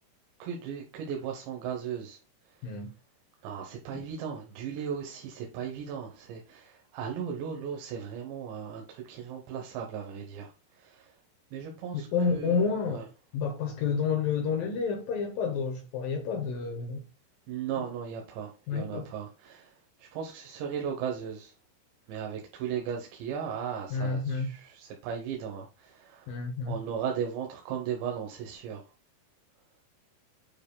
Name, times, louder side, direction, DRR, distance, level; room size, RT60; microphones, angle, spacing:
voice 1, 0.4-2.2 2.4-2.8 3.4-11.2 11.5-12.6 12.9-13.1 17.5-21.5 22.1-26.4 26.6-28.8, right 7 dB, 85° right, 3.2 m, -37 dB
voice 2, 11.9-13.1 13.3-17.0 18.7-19.1 23.9-24.5 26.3-26.8, left 5 dB, 75° left, 2.1 m, -30 dB
9.2 x 5.2 x 2.2 m
omnidirectional pair, 5.0 m